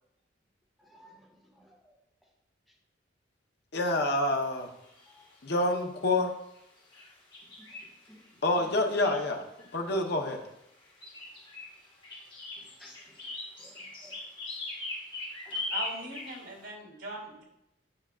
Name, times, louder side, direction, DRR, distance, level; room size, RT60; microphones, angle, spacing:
voice 1, 0.8-2.0 3.8-3.9 5.1-5.2 7.6-7.8 8.1-8.7 9.1-9.2 11.2-11.4 11.8-12.3 12.6-14.3 15.4-15.7, equal, ahead, -4 dB, 1.4 m, -58 dB
voice 2, 3.7-4.7 5.4-6.3 8.4-9.4 9.7-10.4, left 2 dB, 55° left, 2 dB, 0.9 m, -27 dB
sound 1, 4.8-5.3 6.5-6.6 6.9-8.3 8.8-10.1 10.8-16.6, left 2 dB, 25° left, 1.6 m, -40 dB
voice 3, 15.7-17.4, right 2 dB, 85° right, -1 dB, 2.7 m, -40 dB
8.7 x 5.7 x 2.4 m, 0.82 s
head